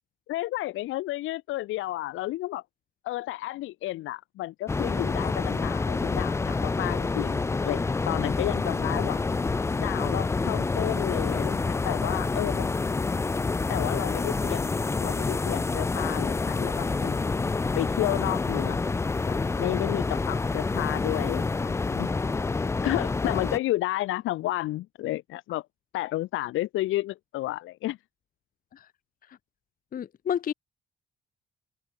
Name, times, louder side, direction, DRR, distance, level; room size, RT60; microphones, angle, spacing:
voice 1, 0.3-2.6 3.0-9.2 9.8-12.7 13.7-14.7 15.0-17.3 17.7-18.8 19.3-22.1 22.5-25.7 25.9-28.0, left 16 dB, 90° left, 1.1 m, -31 dB
sound 1, 4.7-23.6, left 3 dB, 15° left, 0.3 m, -28 dB
voice 2, 29.9-30.5, left 9 dB, 45° left, 0.6 m, -30 dB
cardioid pair, 90°, 20 cm